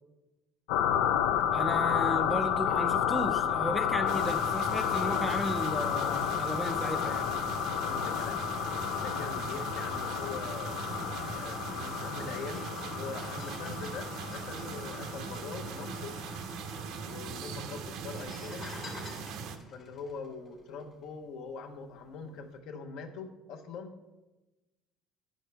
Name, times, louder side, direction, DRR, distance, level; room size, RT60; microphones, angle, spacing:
sound 1, 0.7-17.0, left 9 dB, 90° left, 0.5 m, -31 dB
voice 1, 1.5-7.3, equal, ahead, 0.3 m, -35 dB
sound 2, 4.1-19.6, right 6 dB, 60° right, 0.6 m, -40 dB
voice 2, 7.8-8.6 9.0-10.7 11.3-16.2 17.0-18.7 19.7-24.0, left 5 dB, 65° left, 0.9 m, -43 dB
sound 3, 12.4-16.0 16.2-16.3 16.5-17.2 17.9-21.4 21.8-22.0, left 3 dB, 30° left, 1.0 m, -50 dB
9.4 x 6.3 x 3.3 m
cardioid pair, 155°, 0 cm